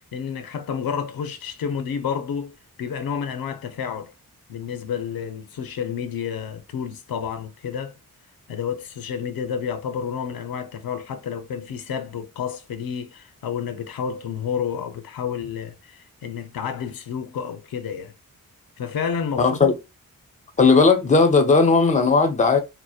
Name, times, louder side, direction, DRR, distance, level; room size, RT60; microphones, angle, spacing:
voice 1, 0.0-4.1 4.5-7.9 8.5-18.1 18.8-19.7, left 7 dB, 85° left, 0.5 m, -30 dB
voice 2, 19.4-19.7 20.6-22.6, left 4 dB, 20° left, 0.5 m, -16 dB
2.6 x 2.1 x 2.3 m
wide cardioid pair, 95°, 35 cm